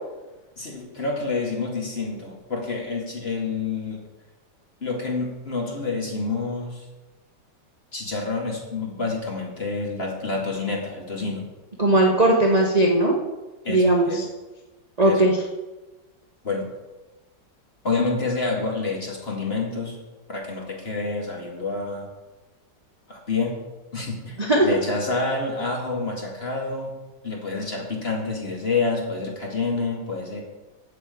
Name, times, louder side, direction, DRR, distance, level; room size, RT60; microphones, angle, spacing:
voice 1, 0.6-4.0 4.8-6.8 7.9-11.4 13.6-14.2 15.0-15.2 16.4-16.7 17.8-20.0 20.3-22.1 23.1-23.6 23.9-26.9 27.2-30.4, left 3 dB, 35° left, -1 dB, 2.4 m, -28 dB
voice 2, 11.8-13.1 13.7-14.2 15.0-15.4 24.4-24.7, right 1 dB, 25° right, -1 dB, 1.0 m, -18 dB
8.5 x 6.6 x 8.3 m, 1.1 s
omnidirectional pair, 1.9 m